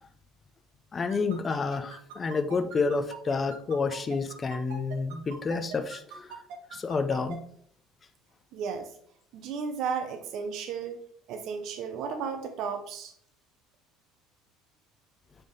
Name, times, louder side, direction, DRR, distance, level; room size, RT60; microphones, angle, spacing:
voice 1, 0.9-6.4 6.7-7.4, left 4 dB, 20° left, 0.4 m, -29 dB
sound 1, 1.1-7.4, right 6 dB, 80° right, 1.4 m, -42 dB
voice 2, 8.5-8.9 9.3-11.0 11.3-13.1, right 6 dB, 45° right, 0.5 m, -34 dB
7.1 x 3.5 x 3.9 m
cardioid pair, 175°, 0 cm